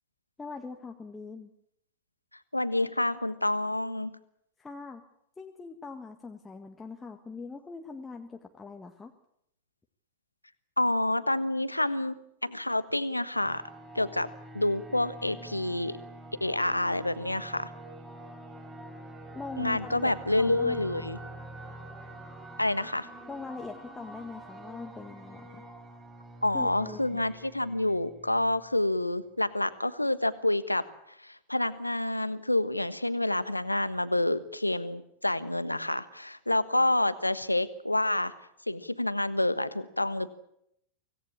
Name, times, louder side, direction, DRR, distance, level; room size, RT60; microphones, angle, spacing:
voice 1, 0.4-1.5 4.6-5.0 5.4-9.1 19.3-21.0 23.3-25.6 26.5-27.2, left 4 dB, 10° left, 3 dB, 1.7 m, -42 dB
voice 2, 2.5-4.1 10.8-13.6 13.9-14.3 14.5-16.0 16.4-17.7 19.6-21.2 22.6-23.1 26.4-30.8 31.2-38.3 38.7-40.3, left 1 dB, 85° left, 14 dB, 1.3 m, -28 dB
sound 1, 13.3-28.7, right 1 dB, 20° right, 5.9 m, -46 dB
25.0 x 18.0 x 8.6 m, 0.77 s
figure-of-eight pair, 90°, 0 cm